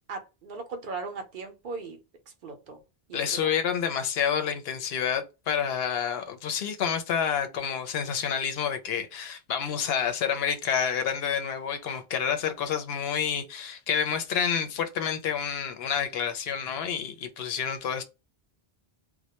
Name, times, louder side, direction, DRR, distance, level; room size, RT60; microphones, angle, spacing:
voice 1, 0.1-2.0 2.3-2.8 3.1-3.7, right 4 dB, 60° right, 0.6 m, -38 dB
voice 2, 3.1-18.0, left 7 dB, 75° left, 0.8 m, -29 dB
2.1 x 2.1 x 2.8 m
omnidirectional pair, 1.0 m